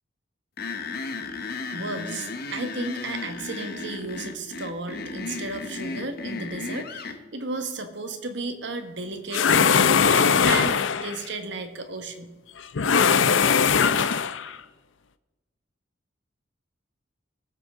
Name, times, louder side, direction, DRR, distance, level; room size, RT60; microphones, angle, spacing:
sound 1, 0.6-7.2, left 3 dB, 55° left, 1.1 m, -34 dB
voice 1, 1.7-12.3, right 3 dB, 70° right, 6 dB, 1.5 m, -34 dB
sound 2, 9.3-11.2 12.7-14.5, left 6 dB, 80° left, 0.6 m, -20 dB
19.0 x 8.1 x 3.7 m, 1.2 s
head